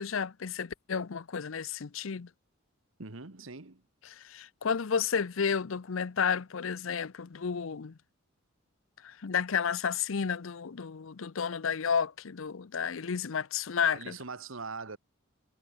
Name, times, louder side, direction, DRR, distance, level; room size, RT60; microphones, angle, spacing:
voice 1, 0.0-2.3 4.0-8.0 9.0-14.2, left 6 dB, 70° left, 0.6 m, -32 dB
voice 2, 3.0-3.8 13.9-15.0, right 4 dB, 70° right, 1.6 m, -42 dB
head